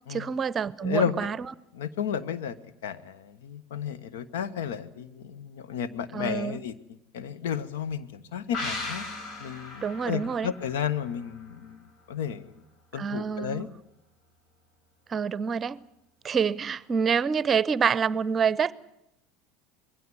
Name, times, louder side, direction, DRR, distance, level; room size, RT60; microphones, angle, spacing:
voice 1, 0.1-1.4 6.1-6.6 9.8-10.5 13.0-13.7 15.1-15.8 16.2-18.7, right 6 dB, 35° right, 0.8 m, -27 dB
voice 2, 0.8-1.3 1.7-2.6 2.8-9.0 9.4-12.6 12.9-13.7, left 8 dB, 80° left, 1.2 m, -33 dB
sound 1, 8.5-12.0 12.3-12.4, left 3 dB, 55° left, 5.0 m, -38 dB
21.5 x 16.5 x 10.0 m
hypercardioid pair, 80°, 0 cm